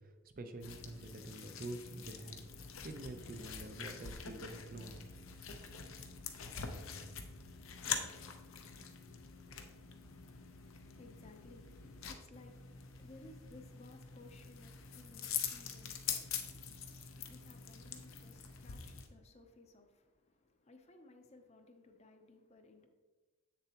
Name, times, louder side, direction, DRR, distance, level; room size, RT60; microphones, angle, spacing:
voice 1, 0.0-5.0, right 2 dB, 45° right, 0.6 m, -47 dB
sound 1, 0.6-19.1, left 7 dB, 80° left, 0.7 m, -45 dB
voice 2, 10.7-22.9, left 2 dB, 30° left, 0.6 m, -59 dB
7.9 x 6.9 x 2.9 m
head